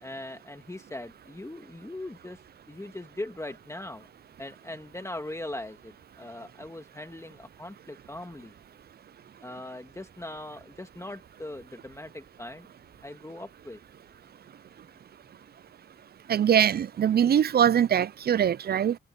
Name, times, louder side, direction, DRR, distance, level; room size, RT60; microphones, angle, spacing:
voice 1, 0.0-2.4 2.7-4.1 4.4-8.5 9.4-12.7 13.0-13.8, left 1 dB, 15° left, 1.8 m, -40 dB
voice 2, 16.3-19.0, right 9 dB, 55° right, 0.4 m, -22 dB
cardioid pair, 55°, 20 cm